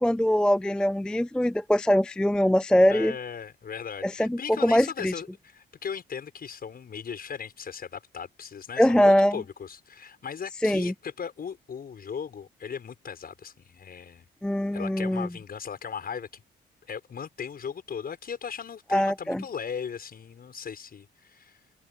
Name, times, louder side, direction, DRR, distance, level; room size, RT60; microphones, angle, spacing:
voice 1, 0.0-3.1 4.0-5.1 8.8-9.3 10.6-10.9 14.4-15.3 18.9-19.4, equal, 5° left, 0.4 m, -22 dB
voice 2, 2.9-14.3 14.7-16.4 16.9-21.6, left 7 dB, 50° left, 6.4 m, -37 dB
open air
cardioid pair, 90°, 20 cm